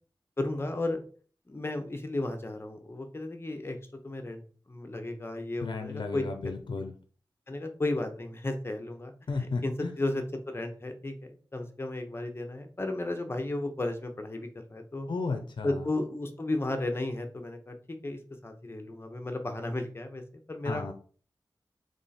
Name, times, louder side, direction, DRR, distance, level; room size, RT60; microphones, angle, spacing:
voice 1, 0.4-1.0 1.5-3.8 4.0-4.4 4.7-6.2 6.6-6.8 7.5-9.1 9.4-11.1 11.5-15.1 15.6-17.7 18.0-20.2 20.5-20.8, left 2 dB, 30° left, 6 dB, 0.8 m, -34 dB
voice 2, 5.6-6.9 9.3-9.9 15.1-15.9 20.6-20.9, left 4 dB, 70° left, 6 dB, 0.6 m, -34 dB
3.6 x 3.1 x 4.2 m, 0.43 s
wide cardioid pair, 90°, 8 cm